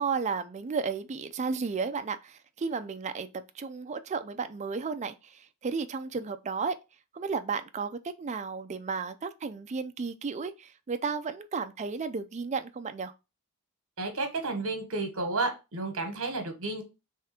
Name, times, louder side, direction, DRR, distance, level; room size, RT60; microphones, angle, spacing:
voice 1, 0.0-3.3 3.5-6.8 7.1-13.1, right 5 dB, 30° right, 0.4 m, -33 dB
voice 2, 14.0-16.8, right 3 dB, 65° right, 1.3 m, -31 dB
3.6 x 3.3 x 4.2 m
head